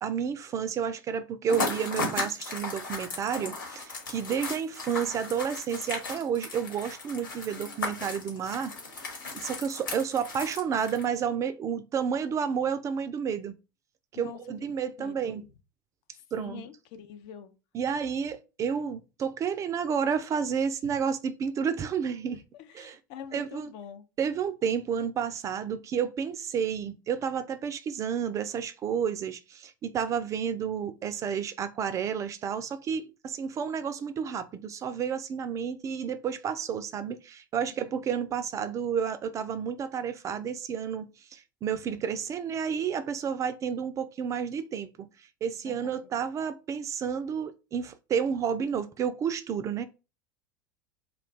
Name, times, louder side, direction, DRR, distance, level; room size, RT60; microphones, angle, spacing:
voice 1, 0.0-8.7 9.3-13.6 14.1-15.5 16.3-16.6 17.7-22.4 22.7-23.0 23.3-23.7 24.2-45.1 45.4-49.8, right 7 dB, 30° right, 0.3 m, -31 dB
sound 1, 1.5-11.2, left 3 dB, 75° left, 1.3 m, -36 dB
voice 2, 15.0-15.4 16.3-17.5 20.8-21.0 22.5-24.0 37.8-37.9 45.6-46.0, left 9 dB, 50° left, 0.5 m, -45 dB
2.3 x 2.2 x 3.7 m
figure-of-eight pair, 80°, 11 cm